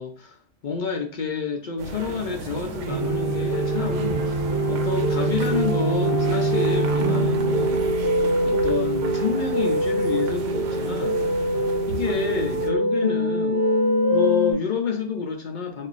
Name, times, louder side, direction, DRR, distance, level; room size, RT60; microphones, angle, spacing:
voice 1, 0.0-7.8 8.4-11.2 11.9-13.7 14.1-15.9, left 6 dB, 60° left, 0.5 m, -29 dB
sound 1, 1.8-12.7, right 4 dB, 75° right, 0.9 m, -35 dB
sound 2, 2.9-14.5, right 1 dB, 35° left, 0.8 m, -23 dB
4.2 x 2.6 x 2.5 m
omnidirectional pair, 1.3 m